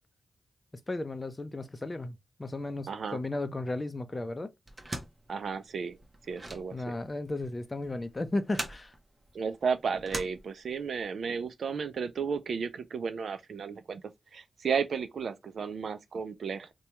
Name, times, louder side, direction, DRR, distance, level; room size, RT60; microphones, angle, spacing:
voice 1, 0.9-4.5 6.7-8.9, left 2 dB, 30° left, 0.5 m, -34 dB
voice 2, 2.9-3.2 5.3-6.0 6.3-7.0 9.3-14.0 14.3-16.7, right 6 dB, 75° right, 0.4 m, -33 dB
sound 1, 4.7-11.0, right 1 dB, 35° right, 0.8 m, -42 dB
2.8 x 2.3 x 3.0 m
cardioid pair, 50°, 0 cm